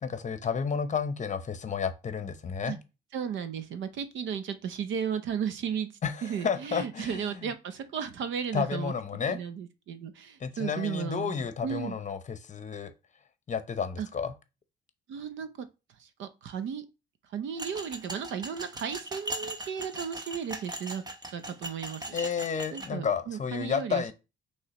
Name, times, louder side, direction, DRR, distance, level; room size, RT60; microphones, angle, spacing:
voice 1, 0.0-2.8 6.0-7.5 8.5-9.4 10.4-12.9 13.5-14.3 22.1-24.1, left 6 dB, 40° left, 0.7 m, -31 dB
voice 2, 3.1-5.9 6.2-8.9 9.3-12.0 14.0-14.1 15.1-15.5 16.0-16.8 17.3-21.0 21.3-22.1 22.7-24.1, right 7 dB, 75° right, 0.7 m, -34 dB
sound 1, 17.6-22.9, right 1 dB, 20° right, 0.8 m, -39 dB
5.5 x 3.2 x 2.9 m
cardioid pair, 90°, 20 cm